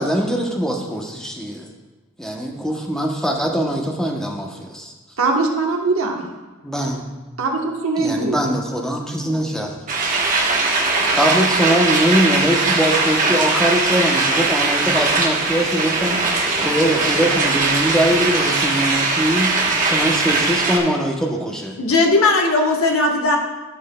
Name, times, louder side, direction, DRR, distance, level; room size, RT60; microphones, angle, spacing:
voice 1, 0.0-1.7 2.2-4.9 6.6-7.0 8.0-9.7 11.1-19.6 19.8-21.8, equal, 5° left, 0 dB, 0.7 m, -22 dB
voice 2, 5.2-6.3 7.4-8.4, right 3 dB, 65° right, 1 dB, 1.1 m, -21 dB
sound 1, 9.9-20.8, right 3 dB, 35° right, 1.0 m, -20 dB
voice 3, 21.8-23.4, left 2 dB, 65° left, 1 dB, 1.1 m, -17 dB
13.0 x 5.9 x 2.2 m, 1.2 s
head